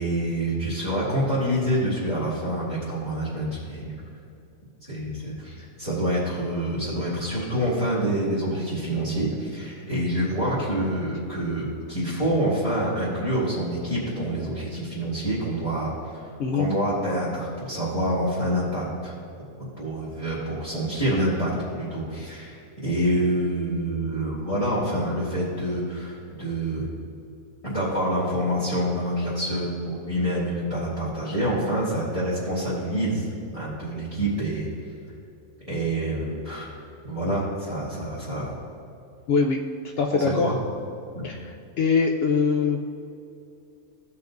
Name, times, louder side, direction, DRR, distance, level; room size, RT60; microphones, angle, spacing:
voice 1, 0.0-3.9 4.9-19.1 19.8-26.9 27.6-33.2 33.5-34.7 35.7-36.7 37.1-38.5 40.2-40.5 41.1-41.3, right 1 dB, 20° left, -10 dB, 2.0 m, -27 dB
voice 2, 39.3-39.6 40.0-40.5 41.2-43.0, left 5 dB, 80° left, 2 dB, 0.5 m, -23 dB
15.5 x 5.6 x 2.6 m, 2.7 s
omnidirectional pair, 1.6 m